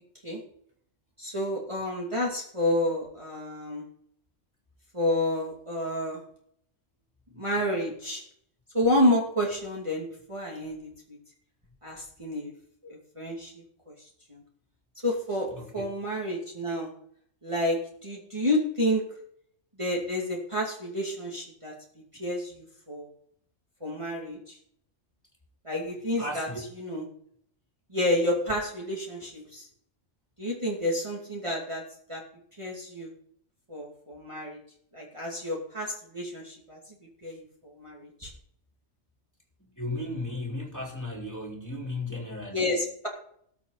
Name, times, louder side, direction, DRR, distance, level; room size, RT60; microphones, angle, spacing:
voice 1, 1.2-3.8 4.9-6.2 7.4-8.2 8.7-11.2 11.8-12.5 12.8-14.4 15.0-16.9 17.4-19.0 19.8-21.7 22.2-23.1 23.8-24.6 25.6-26.5 26.8-27.0 27.9-29.7 30.4-31.8 32.1-32.2 32.6-33.1 33.7-34.6 34.9-37.0 37.2-38.3 42.5-43.1, left 1 dB, 25° right, -3 dB, 2.6 m, -30 dB
voice 2, 26.2-26.6 39.8-42.7, left 2 dB, 15° left, -1 dB, 3.5 m, -35 dB
19.5 x 7.3 x 4.1 m, 0.66 s
omnidirectional pair, 1.3 m